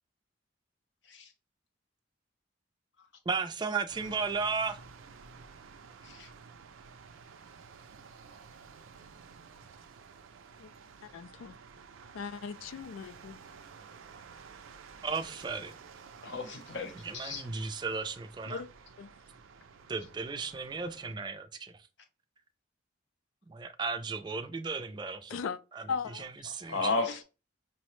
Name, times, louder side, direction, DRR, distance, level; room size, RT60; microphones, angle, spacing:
voice 1, 3.3-4.8 15.0-15.7 17.0-18.6 19.9-21.7 23.5-25.4 25.8-25.9 26.4-26.9, right 4 dB, 20° right, 0.3 m, -34 dB
sound 1, 3.9-21.1, right 5 dB, 85° right, 0.4 m, -52 dB
voice 2, 11.0-11.6 12.1-13.4 18.4-18.7 19.0-19.1 25.3-25.6 25.9-26.3 26.6-26.7, left 6 dB, 85° left, 0.3 m, -38 dB
voice 3, 16.2-17.4 26.7-27.2, left 3 dB, 65° left, 0.8 m, -34 dB
5.5 x 2.0 x 3.0 m
head